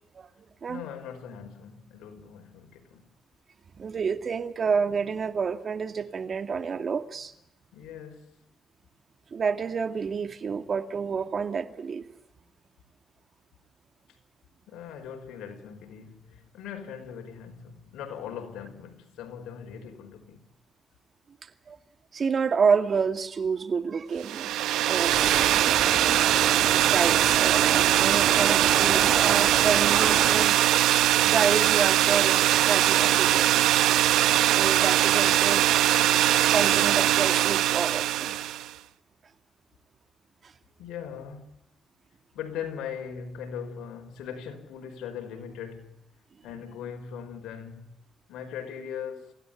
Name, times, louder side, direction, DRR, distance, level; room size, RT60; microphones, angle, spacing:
voice 1, 0.7-3.1 7.7-8.4 14.7-20.5 40.8-41.5 42.3-46.0 46.4-48.0 48.3-49.3, left 8 dB, 85° left, 5.2 m, -40 dB
voice 2, 3.8-7.3 9.3-12.0 21.7-21.8 22.1-24.5 24.9-25.1 26.8-30.6 31.2-33.7 34.3-35.7 36.5-38.4 40.4-40.5, right 5 dB, 45° right, 2.3 m, -29 dB
sound 1, 24.2-38.7, right 13 dB, 85° right, 0.9 m, -21 dB
sound 2, 25.1-30.5, right 4 dB, 30° right, 1.7 m, -31 dB
28.5 x 17.0 x 9.2 m
cardioid pair, 90°, 0 cm